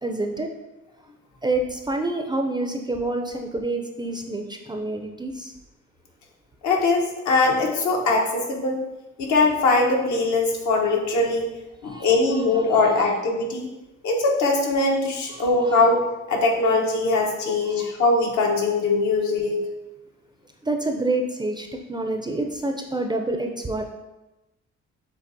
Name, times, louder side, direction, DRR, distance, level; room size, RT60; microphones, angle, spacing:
voice 1, 0.0-0.5 1.4-5.5 11.9-12.5 15.3-15.4 17.7-17.9 20.6-23.8, right 2 dB, 15° right, 3 dB, 0.4 m, -27 dB
voice 2, 6.6-8.8 9.2-11.5 11.8-13.7 14.0-16.0 16.3-19.6, left 3 dB, 75° left, 0 dB, 1.0 m, -21 dB
7.1 x 2.8 x 2.6 m, 1.0 s
cardioid pair, 90°, 30 cm